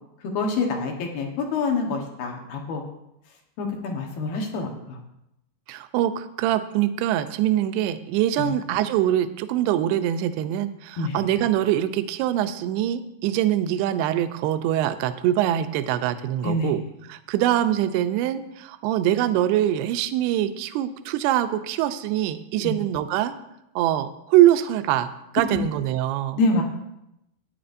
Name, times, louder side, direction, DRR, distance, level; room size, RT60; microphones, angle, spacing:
voice 1, 0.3-2.8 3.6-5.0 8.4-8.5 11.0-11.2 16.4-16.7 22.6-22.7 25.5-25.6 26.4-26.6, left 3 dB, 65° left, 1 dB, 2.7 m, -26 dB
voice 2, 5.7-16.8 17.1-23.3 23.8-26.4, right 12 dB, 80° right, 10 dB, 2.5 m, -23 dB
16.5 x 9.8 x 2.6 m, 0.85 s
omnidirectional pair, 5.1 m